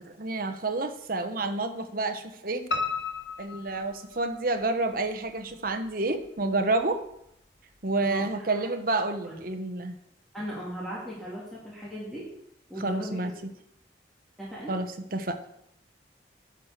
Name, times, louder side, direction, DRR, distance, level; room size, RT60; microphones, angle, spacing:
voice 1, 0.0-2.7 3.4-7.0 7.8-9.9 12.8-13.3 14.7-15.4, right 2 dB, 50° right, 7 dB, 1.1 m, -29 dB
Piano, 2.7-4.6 5.0-5.9 6.2-6.3 6.8-6.9 7.1-7.2, left 4 dB, 80° left, 1.0 m, -34 dB
voice 2, 10.3-12.2 12.7-13.3 14.4-14.7, equal, ahead, -7 dB, 2.9 m, -37 dB
10.5 x 6.1 x 6.7 m, 0.75 s
head